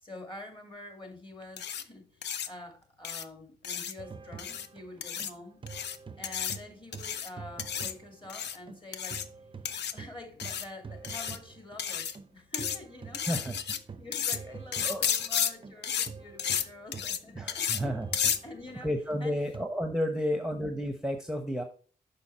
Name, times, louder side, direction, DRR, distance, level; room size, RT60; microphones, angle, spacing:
voice 1, 0.0-5.6 6.2-9.3 9.9-13.4 14.0-18.9 19.2-19.4 20.1-20.4, left 2 dB, 25° left, 2.4 m, -47 dB
sound 1, 1.6-1.8 2.2-2.5 3.0-3.2 3.6-3.9 4.4-4.7 5.0-5.3 5.7-6.0 6.2-6.6 6.9-7.3 7.6-7.9 8.3-8.6 8.9-9.2 9.6-9.9 10.4-10.6 11.0-11.4 11.8-12.1 12.5-12.8 13.1-13.8 14.1-14.4 14.7-15.5 15.8-16.1 16.4-16.6 16.9-17.2 17.5-17.8 18.1-18.4, left 8 dB, 70° left, 0.6 m, -32 dB
sound 2, 4.0-8.8 9.1-19.7, right 5 dB, 30° right, 0.5 m, -46 dB
voice 2, 17.4-18.1 18.8-21.6, equal, 5° right, 0.9 m, -31 dB
6.3 x 5.5 x 4.2 m
supercardioid pair, 45°, 18 cm